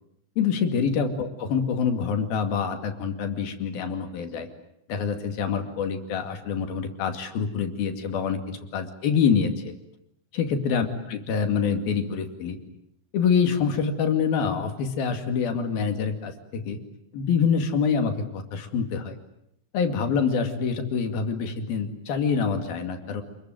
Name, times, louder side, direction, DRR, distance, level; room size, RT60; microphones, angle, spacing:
voice 1, 0.4-4.5 4.9-9.7 10.3-12.6 13.1-16.8 17.1-19.2 19.7-23.2, left 6 dB, 75° left, 7 dB, 4.2 m, -26 dB
28.5 x 22.0 x 9.2 m, 0.76 s
omnidirectional pair, 4.3 m